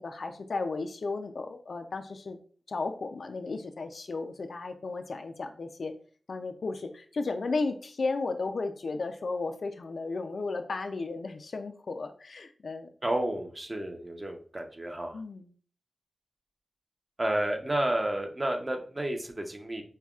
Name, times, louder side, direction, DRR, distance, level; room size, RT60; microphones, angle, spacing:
voice 1, 0.0-2.4 2.7-5.9 6.3-12.9 15.1-15.5, left 3 dB, 70° left, 7 dB, 0.4 m, -34 dB
voice 2, 13.0-15.1 17.2-19.8, right 1 dB, 30° right, 3 dB, 0.7 m, -31 dB
5.4 x 2.2 x 2.4 m, 0.44 s
cardioid pair, 60°, 0 cm